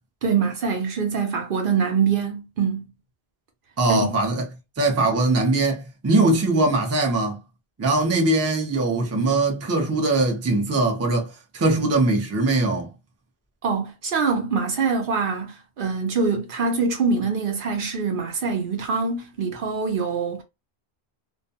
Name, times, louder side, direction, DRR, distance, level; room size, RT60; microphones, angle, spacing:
voice 1, 0.2-2.8 3.9-4.1 13.6-20.4, right 5 dB, 60° right, 0.7 m, -24 dB
voice 2, 3.8-4.5 4.8-7.4 7.8-12.9, right 2 dB, 20° right, 0.5 m, -21 dB
2.3 x 2.2 x 2.7 m
omnidirectional pair, 1.1 m